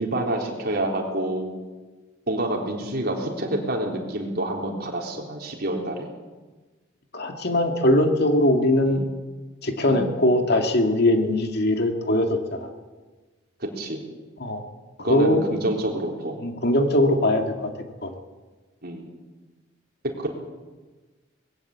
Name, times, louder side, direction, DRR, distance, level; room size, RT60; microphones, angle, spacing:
voice 1, 0.0-1.5 2.3-6.1 8.9-9.0 9.8-10.1 13.6-14.0 15.0-16.4 18.8-19.1 20.2-20.3, right 1 dB, 55° right, 1 dB, 4.0 m, -28 dB
voice 2, 7.1-9.0 9.6-12.7 14.4-14.6 15.0-15.6 16.4-17.7 18.0-18.1, left 1 dB, 55° left, 4 dB, 2.2 m, -21 dB
21.0 x 15.5 x 8.6 m, 1.3 s
head